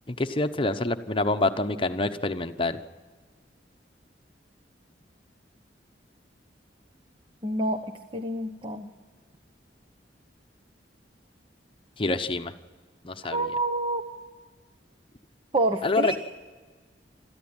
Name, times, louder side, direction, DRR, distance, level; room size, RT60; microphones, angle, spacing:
voice 1, 0.1-2.8 12.0-12.5 13.0-13.4 15.8-16.2, left 2 dB, 30° left, 8 dB, 0.9 m, -26 dB
voice 2, 7.4-7.8 8.1-8.9 13.3-14.0 15.5-16.2, right 2 dB, 30° right, 7 dB, 1.0 m, -27 dB
27.0 x 14.0 x 8.9 m, 1.4 s
head